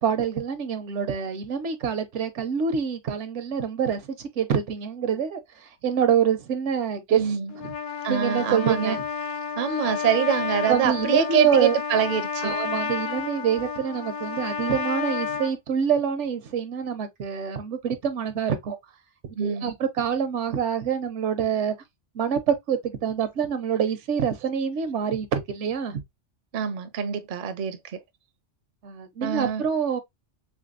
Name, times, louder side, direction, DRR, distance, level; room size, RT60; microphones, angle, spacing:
voice 1, 0.0-5.4 5.8-7.4 7.6-7.7 8.1-9.0 10.7-11.8 12.4-18.8 19.4-21.8 22.1-26.0 28.8-30.0, right 7 dB, 80° right, 1.0 m, -26 dB
voice 2, 7.1-7.5 8.0-9.0 9.6-12.5 19.4-19.7 26.5-27.8 29.2-29.6, right 7 dB, 55° right, 0.6 m, -25 dB
Trumpet, 7.5-15.5, left 6 dB, 55° left, 0.7 m, -31 dB
3.5 x 3.3 x 2.4 m
omnidirectional pair, 1.2 m